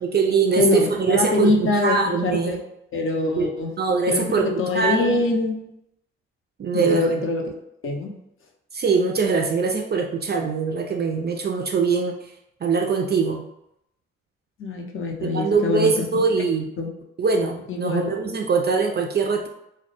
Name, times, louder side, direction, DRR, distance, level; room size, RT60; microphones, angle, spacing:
voice 1, 0.0-2.6 3.4-3.5 3.8-5.2 6.6-7.1 8.7-12.2 12.6-13.4 15.2-16.7 17.2-19.5, right 5 dB, 30° right, 2 dB, 0.4 m, -22 dB
voice 2, 0.6-2.6 2.9-3.7 4.1-5.6 6.7-7.4 7.8-8.1 14.6-16.1 16.8-16.9 17.7-18.1, left 2 dB, 40° left, 1 dB, 0.5 m, -24 dB
2.1 x 2.0 x 2.9 m, 0.82 s
hypercardioid pair, 45°, 32 cm